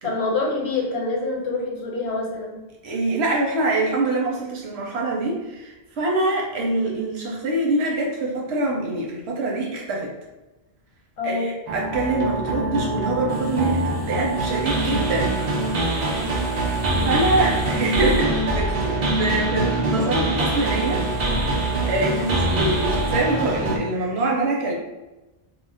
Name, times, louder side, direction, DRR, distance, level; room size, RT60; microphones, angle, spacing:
voice 1, 0.0-2.6 11.2-11.5 16.2-16.4, left 3 dB, 85° left, -2 dB, 1.0 m, -26 dB
voice 2, 2.8-10.1 11.2-15.4 17.0-21.1 21.6-24.7, right 2 dB, 85° right, -2 dB, 0.9 m, -25 dB
sound 1, 11.7-23.8, right 2 dB, 50° right, 0.5 m, -24 dB
2.4 x 2.0 x 3.3 m, 1.1 s
omnidirectional pair, 1.1 m